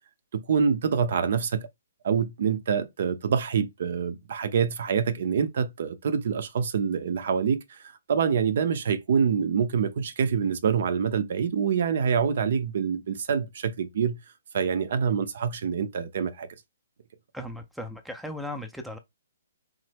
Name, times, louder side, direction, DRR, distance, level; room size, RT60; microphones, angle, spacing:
voice 1, 0.3-1.7 2.0-7.8 8.1-14.2 14.5-16.5, right 6 dB, 60° right, 0.5 m, -26 dB
voice 2, 17.3-19.0, left 1 dB, ahead, 0.4 m, -37 dB
3.1 x 2.0 x 3.2 m
figure-of-eight pair, 135°, 0 cm